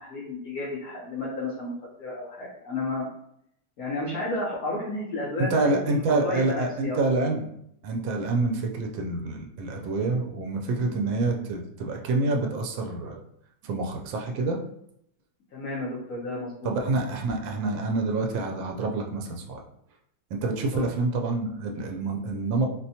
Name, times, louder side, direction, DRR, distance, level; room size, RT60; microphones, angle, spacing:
voice 1, 0.0-3.1 3.8-7.0 15.5-16.7 20.7-20.9, left 2 dB, 60° left, -6 dB, 1.1 m, -32 dB
voice 2, 5.4-7.4 7.8-13.2 13.6-14.6 16.6-19.6 20.3-22.7, right 3 dB, 85° right, 2 dB, 1.3 m, -27 dB
4.0 x 2.2 x 2.7 m, 0.73 s
omnidirectional pair, 2.0 m